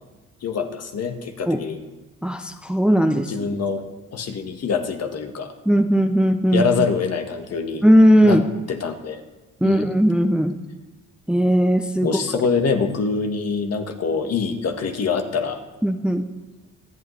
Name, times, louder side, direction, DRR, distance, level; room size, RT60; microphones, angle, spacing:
voice 1, 0.4-1.8 3.3-3.8 4.1-5.5 6.5-7.9 8.2-8.4 8.7-9.2 9.6-9.9 12.0-15.6, left 5 dB, 55° left, 5 dB, 1.5 m, -24 dB
voice 2, 2.2-3.3 5.7-6.6 7.8-8.4 9.6-10.5 11.3-12.1 15.8-16.2, equal, 5° right, 7 dB, 0.6 m, -17 dB
24.5 x 8.2 x 3.3 m, 1.2 s
cardioid pair, 90°, 30 cm